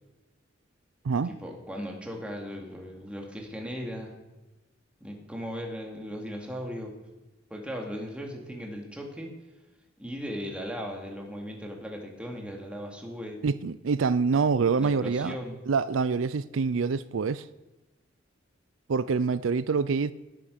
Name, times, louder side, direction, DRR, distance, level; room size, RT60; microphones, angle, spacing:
voice 1, 1.2-4.1 5.0-6.9 7.5-9.3 10.0-13.4 14.8-15.6, equal, 5° right, 2.6 m, -37 dB
voice 2, 13.4-15.4 15.7-17.5 18.9-20.1, right 5 dB, 85° right, 0.5 m, -26 dB
18.0 x 9.2 x 6.6 m
head